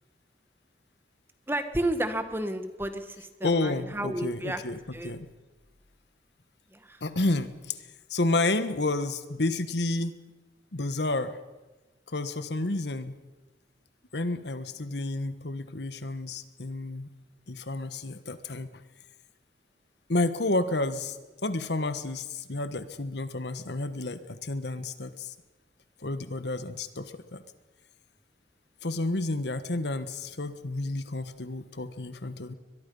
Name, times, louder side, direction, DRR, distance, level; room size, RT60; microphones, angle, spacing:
voice 1, 1.5-4.6 4.9-5.1 6.7-7.0, right 1 dB, 10° right, 9 dB, 1.3 m, -32 dB
voice 2, 3.4-4.8 5.0-5.3 7.0-7.8 8.1-10.2 10.7-11.4 12.1-13.2 14.1-17.1 17.5-18.7 20.1-21.2 21.4-25.3 26.0-27.4 28.8-32.5, left 2 dB, 75° left, 11 dB, 1.3 m, -30 dB
22.5 x 22.5 x 5.5 m, 1.1 s
head